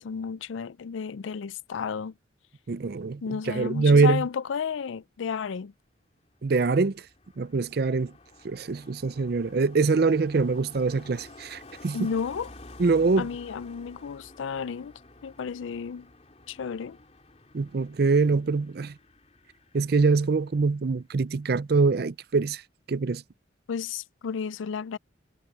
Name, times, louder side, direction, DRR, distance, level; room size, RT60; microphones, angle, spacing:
voice 1, 0.0-2.1 3.2-5.7 11.9-12.5 13.2-14.9 15.2-16.1 16.5-17.0 23.7-25.0, left 6 dB, 80° left, 0.4 m, -32 dB
voice 2, 2.7-4.3 6.4-7.0 7.4-8.1 8.4-12.1 12.8-13.3 17.5-18.9 19.7-22.6 22.9-23.2, right 4 dB, 55° right, 0.5 m, -24 dB
Car passing by, 6.2-21.0 21.3-21.6, left 2 dB, 35° left, 3.3 m, -51 dB
head